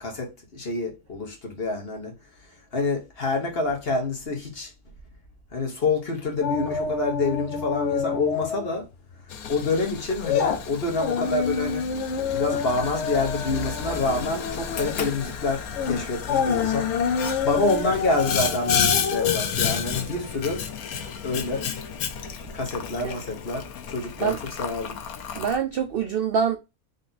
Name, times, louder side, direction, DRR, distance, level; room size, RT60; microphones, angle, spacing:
voice 1, 0.0-2.1 2.7-4.7 5.5-8.9 9.5-11.8 12.3-16.9 17.4-20.6 21.2-21.7 22.5-25.0, left 3 dB, 45° left, 1.5 m, -27 dB
sound 1, 6.4-8.8 9.1-9.3 9.8-20.8 21.1-21.2, left 6 dB, 60° left, 0.9 m, -28 dB
Boiling, 9.3-25.6, left 7 dB, 80° left, 1.2 m, -32 dB
voice 2, 25.3-26.6, right 7 dB, 65° right, 0.5 m, -25 dB
3.9 x 3.2 x 3.9 m
omnidirectional pair, 1.5 m